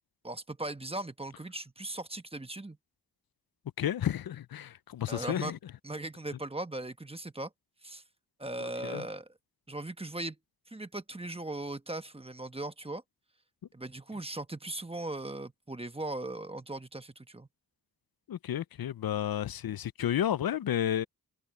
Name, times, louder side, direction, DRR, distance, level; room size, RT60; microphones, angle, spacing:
voice 1, 0.2-2.8 5.1-5.5 5.8-7.5 7.8-8.0 8.4-9.3 9.7-10.4 10.7-13.0 13.7-17.5, right 2 dB, 15° right, 1.1 m, -38 dB
voice 2, 3.8-5.6 8.6-9.0 18.3-21.0, left 10 dB, 85° left, 0.5 m, -32 dB
wide cardioid pair, 85°, 35 cm